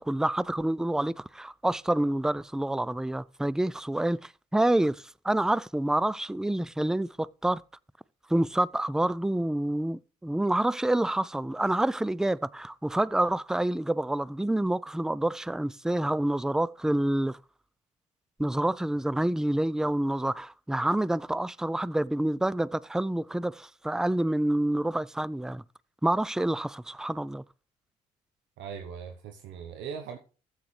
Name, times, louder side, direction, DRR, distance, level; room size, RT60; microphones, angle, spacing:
voice 1, 0.0-7.6 8.3-17.4 18.4-25.6 26.0-27.4, right 1 dB, 5° right, 0.4 m, -28 dB
voice 2, 28.6-30.2, right 7 dB, 75° right, 1.0 m, -39 dB
13.0 x 8.1 x 3.2 m
hypercardioid pair, 50°, 19 cm